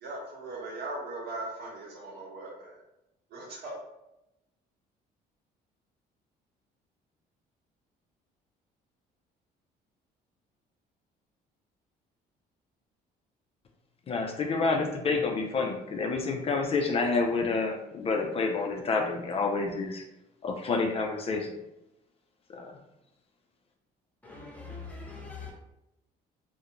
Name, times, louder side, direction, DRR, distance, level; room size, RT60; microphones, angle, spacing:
voice 1, 0.0-2.8 3.3-3.8, right 2 dB, 70° right, -3 dB, 1.0 m, -39 dB
voice 2, 14.1-20.0 20.4-21.5 22.5-22.7, left 4 dB, 35° left, 2 dB, 0.4 m, -28 dB
voice 3, 24.2-25.5, left 4 dB, 10° left, -3 dB, 0.7 m, -42 dB
2.4 x 2.1 x 2.8 m, 0.89 s
cardioid pair, 110°, 17 cm